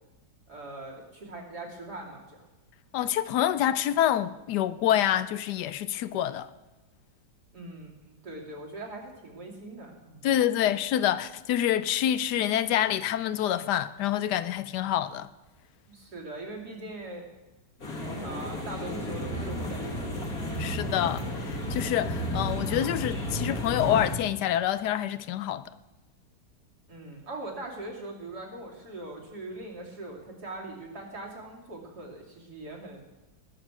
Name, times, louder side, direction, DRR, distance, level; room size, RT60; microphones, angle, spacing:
voice 1, 0.5-2.4 7.5-10.3 15.9-17.2 18.0-20.3 26.9-33.0, right 2 dB, 65° right, 3.3 m, -41 dB
voice 2, 2.9-6.5 10.2-15.3 20.6-25.6, left 11 dB, 75° left, 1.2 m, -27 dB
sound 1, 17.8-24.2, left 1 dB, 60° left, 2.7 m, -32 dB
20.0 x 7.5 x 6.2 m
omnidirectional pair, 1.8 m